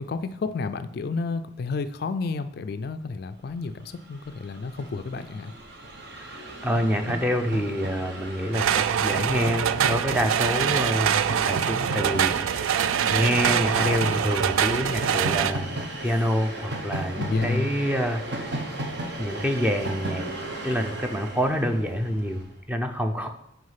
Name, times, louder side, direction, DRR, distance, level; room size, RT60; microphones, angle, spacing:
voice 1, 0.0-5.5 17.2-17.7, left 4 dB, 50° left, 11 dB, 0.3 m, -30 dB
Train, 3.8-3.9 4.0-22.4, right 1 dB, 55° right, 1.0 m, -35 dB
voice 2, 6.1-12.7 13.1-18.5 19.2-20.3 20.6-23.3, equal, 5° right, 5 dB, 0.6 m, -27 dB
sound 1, 8.5-15.5, right 8 dB, 85° right, 0.3 m, -24 dB
6.3 x 4.8 x 5.7 m, 0.80 s
head